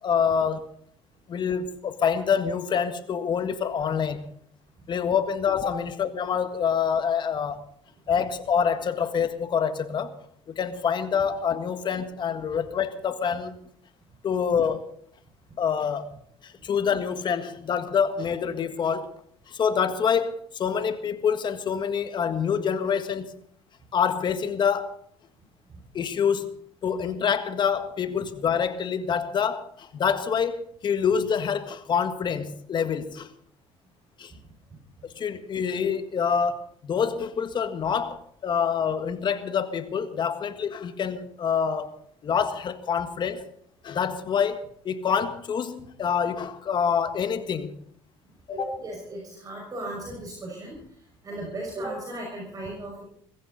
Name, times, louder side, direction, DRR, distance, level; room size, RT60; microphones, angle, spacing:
voice 1, 0.0-0.6 1.3-4.2 4.9-7.6 8.1-10.1 10.6-13.6 14.2-14.8 15.6-16.1 16.4-19.1 19.5-23.3 23.9-25.0 25.9-26.5 26.8-33.3 34.2-34.3 35.1-41.9 42.2-43.4 43.8-47.7 48.5-48.7, left 7 dB, 45° left, 1.7 m, -26 dB
voice 2, 48.5-50.8 51.2-53.0, right 1 dB, 30° right, 5.9 m, -36 dB
20.5 x 16.0 x 4.1 m
cardioid pair, 110°, 11 cm